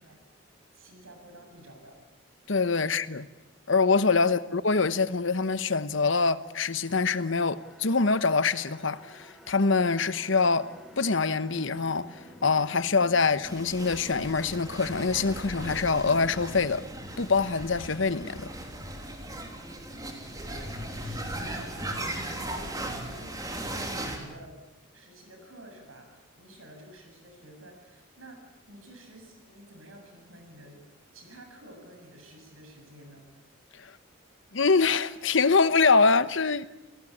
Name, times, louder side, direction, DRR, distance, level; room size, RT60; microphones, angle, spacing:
voice 1, 0.7-2.0 2.8-2.9 19.3-20.7 21.0-24.6 24.9-30.8 31.1-33.3 34.3-34.4, right 1 dB, 85° right, 7.7 m, -51 dB
voice 2, 2.5-3.3 3.7-10.7 11.0-12.1 12.4-16.8 17.2-18.5 34.5-36.6, left 4 dB, 65° left, 1.1 m, -24 dB
sound 1, 6.3-21.5, equal, ahead, 2.6 m, -53 dB
sound 2, 13.4-24.2, right 1 dB, 20° right, 3.2 m, -37 dB
29.5 x 18.5 x 8.7 m
head